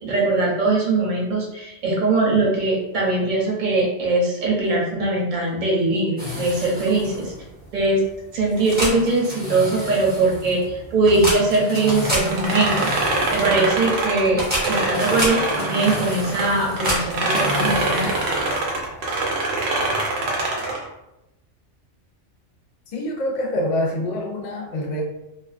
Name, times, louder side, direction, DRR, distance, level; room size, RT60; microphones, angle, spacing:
voice 1, 0.0-7.3 7.7-8.0 8.3-18.1, right 2 dB, 50° right, -3 dB, 0.7 m, -21 dB
sound 1, 6.2-18.9, equal, 10° right, 0.7 m, -30 dB
sound 2, 12.0-16.5 16.8-20.8, right 2 dB, 85° right, 1.0 m, -24 dB
voice 2, 22.9-25.0, left 1 dB, 60° left, 0 dB, 0.5 m, -25 dB
2.4 x 2.2 x 2.4 m, 0.91 s
omnidirectional pair, 1.2 m